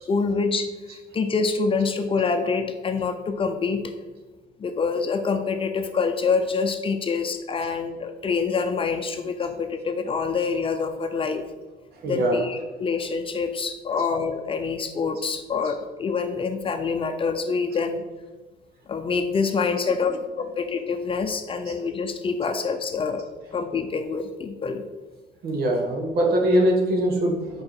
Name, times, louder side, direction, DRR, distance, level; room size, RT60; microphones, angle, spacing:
voice 1, 0.1-0.7 1.1-3.9 4.6-11.4 12.0-18.0 18.9-23.2 23.5-24.8, left 5 dB, 30° left, 7 dB, 0.6 m, -26 dB
voice 2, 11.9-12.4 21.7-21.8 25.4-27.6, right 1 dB, 65° right, 1 dB, 1.4 m, -22 dB
4.8 x 4.7 x 4.7 m, 1.2 s
cardioid pair, 110°, 17 cm